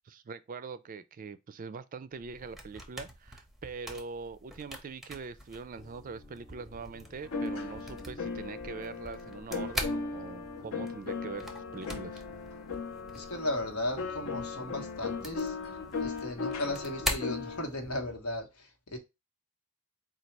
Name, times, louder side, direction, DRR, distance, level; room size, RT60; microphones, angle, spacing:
voice 1, 0.1-12.2, right 5 dB, 40° right, 0.4 m, -43 dB
sound 1, 2.1-18.1, equal, ahead, 0.6 m, -43 dB
sound 2, 5.7-18.2, left 1 dB, 25° left, 0.9 m, -56 dB
sound 3, 7.2-17.7, left 4 dB, 70° left, 0.7 m, -37 dB
voice 2, 13.1-15.5 16.0-19.0, left 1 dB, 90° left, 1.1 m, -36 dB
4.0 x 2.3 x 4.5 m
head